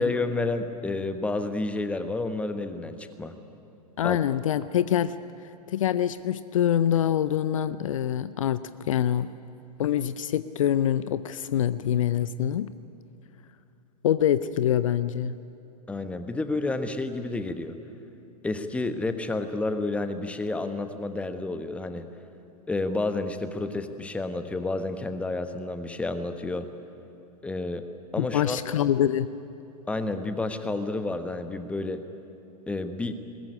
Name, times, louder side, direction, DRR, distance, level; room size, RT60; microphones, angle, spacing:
voice 1, 0.0-3.3 4.0-4.2 15.9-17.8 18.4-22.0 22.7-26.7 27.4-27.9 28.1-28.6 29.9-32.0 32.7-33.1, left 2 dB, 5° left, 9 dB, 1.2 m, -30 dB
voice 2, 4.0-5.1 5.7-9.3 9.8-12.7 14.0-15.4 28.2-29.3, left 10 dB, 50° left, 15 dB, 0.6 m, -25 dB
21.0 x 20.0 x 9.8 m, 2.8 s
figure-of-eight pair, 100°, 21 cm